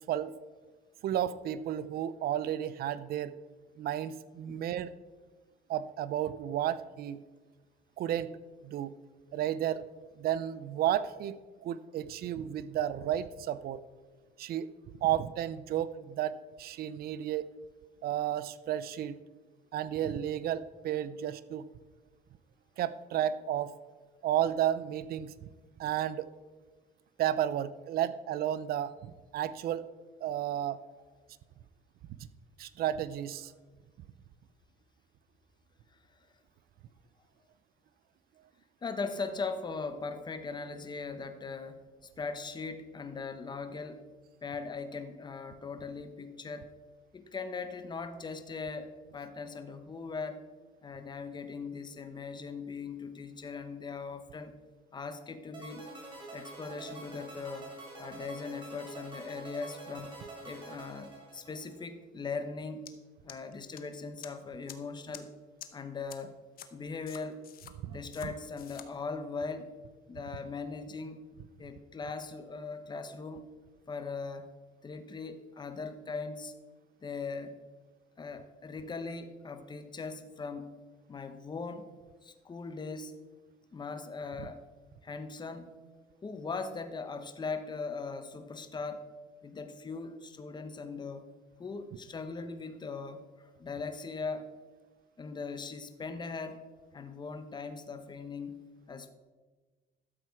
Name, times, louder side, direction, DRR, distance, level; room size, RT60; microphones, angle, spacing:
voice 1, 1.0-3.3 3.8-4.9 5.7-7.2 8.0-8.3 8.6-8.9 9.3-9.8 10.2-13.8 14.4-14.7 15.0-17.5 18.0-19.2 19.7-21.7 22.8-23.7 24.2-25.5 25.8-26.3 27.2-29.8 30.2-30.8 32.6-33.5 67.8-68.0, right 11 dB, 65° right, 16 dB, 0.6 m, -32 dB
voice 2, 38.8-41.8 42.2-44.1 44.4-46.7 47.1-50.5 50.8-54.5 54.9-55.9 56.3-57.7 58.0-60.2 60.4-63.0 63.2-65.3 65.7-66.3 66.7-67.4 67.9-69.7 70.1-71.2 71.6-73.5 73.9-74.5 74.8-76.6 77.0-77.5 78.2-80.7 81.1-81.9 82.2-83.2 83.7-84.6 85.0-85.7 86.2-89.1 89.4-91.3 91.6-94.5 95.2-96.6 96.9-98.6 98.9-99.1, left 4 dB, 25° left, 8 dB, 1.0 m, -40 dB
sound 1, 55.5-61.8, right 2 dB, 30° right, 4.0 m, -47 dB
sound 2, 62.9-63.0 63.3-63.8 64.2-64.3 64.7-64.8 65.1-65.2 65.6-65.7 66.1-66.2 66.6-66.7 67.1-67.7 68.1-68.3 68.6-68.9, left 11 dB, 60° left, 1.0 m, -46 dB
12.5 x 7.6 x 4.7 m, 1.3 s
cardioid pair, 110°, 17 cm